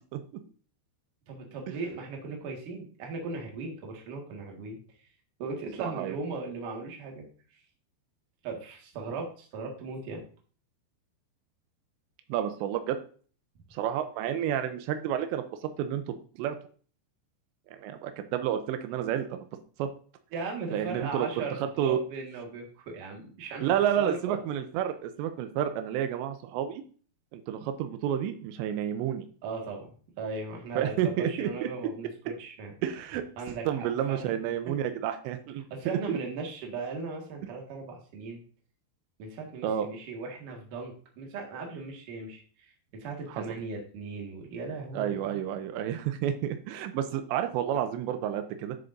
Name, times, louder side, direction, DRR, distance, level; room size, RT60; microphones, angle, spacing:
voice 1, 1.3-4.8 5.4-7.3 8.4-10.2 20.3-24.4 29.4-29.9 30.2-32.7 33.4-34.3 35.7-38.4 39.2-45.4, right 4 dB, 55° right, 1 dB, 2.9 m, -38 dB
voice 2, 5.8-6.2 12.3-13.0 13.7-16.6 17.7-19.4 19.8-19.9 20.7-21.4 21.8-22.0 23.6-26.8 27.3-29.3 30.8-31.7 32.8-33.2 33.7-36.2 39.6-39.9 43.3-43.4 44.9-48.8, right 10 dB, 90° right, 8 dB, 2.9 m, -30 dB
11.0 x 6.8 x 2.6 m, 0.42 s
omnidirectional pair, 5.1 m